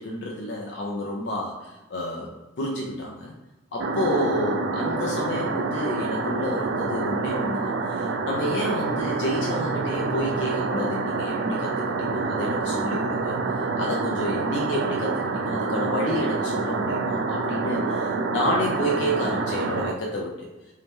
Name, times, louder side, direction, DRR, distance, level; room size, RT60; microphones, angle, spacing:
voice 1, 0.0-2.3 2.6-3.3 3.7-11.7 12.0-13.4 13.8-20.5, left 1 dB, 75° left, -2 dB, 0.5 m, -30 dB
sound 1, 3.8-19.9, right 3 dB, 85° right, 0.4 m, -27 dB
Piano, 3.9-11.2, left 1 dB, 30° left, 1.1 m, -42 dB
3.5 x 2.8 x 3.0 m, 1.1 s
head